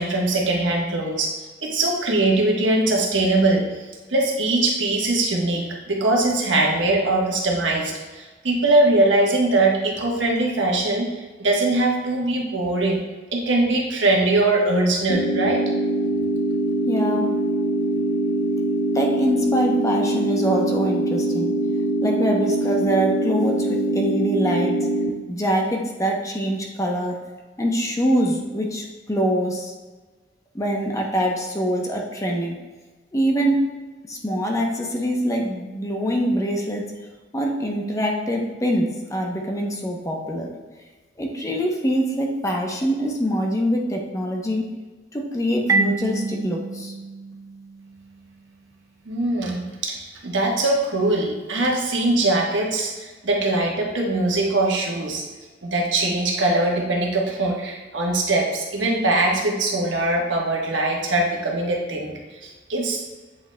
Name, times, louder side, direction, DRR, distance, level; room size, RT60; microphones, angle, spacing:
voice 1, 0.0-1.3 1.6-3.6 4.1-13.0 13.3-15.6 49.0-55.2 55.6-63.0, right 2 dB, 80° right, -1 dB, 1.2 m, -21 dB
sound 1, 15.1-25.1, right 2 dB, 70° left, 0.6 m, -23 dB
voice 2, 16.8-17.3 18.9-21.5 22.0-24.9 25.3-27.2 27.6-29.7 30.5-32.6 33.1-33.6 34.1-36.8 37.3-40.5 41.2-44.7 45.1-46.9, equal, 15° left, 0 dB, 0.7 m, -24 dB
Marimba xylophone, 45.7-48.3, right 3 dB, 15° right, 0.3 m, -27 dB
8.2 x 5.3 x 2.2 m, 1.3 s
head